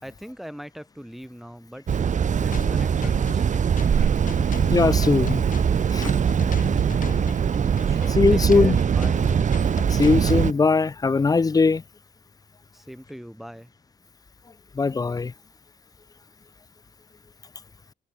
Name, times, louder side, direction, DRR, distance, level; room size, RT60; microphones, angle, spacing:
voice 1, 0.0-2.0 2.3-3.7 7.9-9.3 12.7-13.7, equal, ahead, 4.4 m, -41 dB
sound 1, 1.9-10.5, right 7 dB, 40° right, 1.0 m, -22 dB
sound 2, 2.5-10.5, left 7 dB, 45° left, 5.7 m, -38 dB
voice 2, 4.7-5.4 5.9-6.1 8.2-8.8 9.9-11.8 14.8-15.3, left 4 dB, 20° left, 0.5 m, -20 dB
cardioid pair, 130°, 19 cm